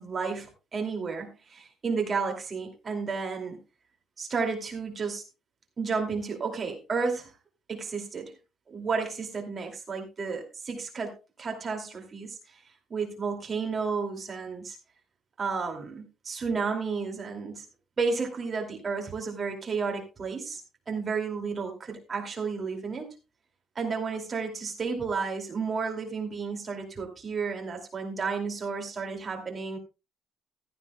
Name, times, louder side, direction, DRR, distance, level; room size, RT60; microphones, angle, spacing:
voice 1, 0.0-3.6 4.2-5.2 5.8-7.3 7.7-8.3 8.7-12.6 12.9-14.8 15.4-17.7 18.0-20.6 20.9-23.1 23.8-29.8, right 5 dB, 25° right, 3 dB, 2.5 m, -32 dB
15.0 x 13.0 x 2.2 m, 0.27 s
cardioid pair, 175°, 0 cm